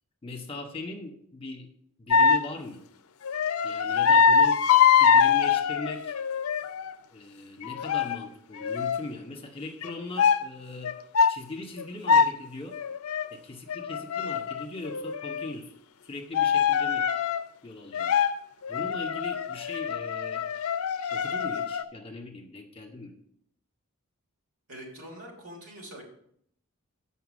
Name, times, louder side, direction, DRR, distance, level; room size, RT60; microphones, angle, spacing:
voice 1, 0.2-1.7 2.0-2.8 3.6-4.6 5.0-6.1 7.1-10.9 11.3-12.8 13.3-15.7 16.0-17.1 17.6-18.2 18.7-20.5 21.1-23.1, left 2 dB, 25° left, 3 dB, 1.1 m, -39 dB
sound 1, 2.1-2.5 3.2-6.9 7.6-8.3 8.6-9.1 9.8-9.9 10.2-10.4 10.8-11.4 11.8-12.4 12.7-13.3 13.7-15.5 16.3-17.4 17.9-18.3 18.6-21.8, left 6 dB, 75° left, 0.5 m, -24 dB
voice 2, 24.7-26.0, equal, 85° right, -1 dB, 3.1 m, -44 dB
8.1 x 5.7 x 6.1 m, 0.67 s
head